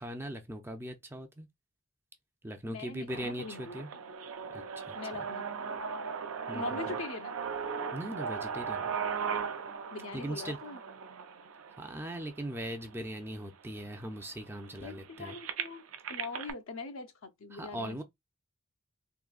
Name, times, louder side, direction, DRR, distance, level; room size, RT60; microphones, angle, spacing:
voice 1, 0.0-1.5 2.4-3.9 4.5-5.0 6.5-7.0 7.9-8.9 10.1-10.6 11.8-15.4 17.5-18.0, right 1 dB, 10° right, 0.4 m, -40 dB
voice 2, 2.7-4.0 4.9-5.8 6.5-7.3 9.9-10.8 14.8-15.8 16.1-18.0, left 3 dB, 80° left, 0.7 m, -42 dB
sound 1, 3.1-13.0 13.7-13.8 14.0-16.5, right 6 dB, 85° right, 0.5 m, -38 dB
3.7 x 2.6 x 2.3 m
head